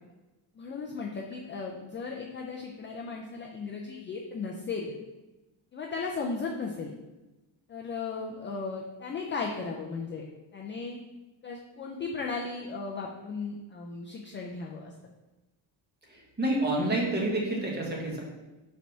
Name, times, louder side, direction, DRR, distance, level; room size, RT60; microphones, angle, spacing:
voice 1, 0.5-4.9 5.7-6.9 7.7-10.2 10.5-11.0 11.4-14.9, left 4 dB, 25° left, 0 dB, 0.4 m, -36 dB
voice 2, 16.1-18.2, right 1 dB, 20° right, -2 dB, 1.3 m, -28 dB
5.1 x 3.4 x 5.5 m, 1.1 s
cardioid pair, 160°, 47 cm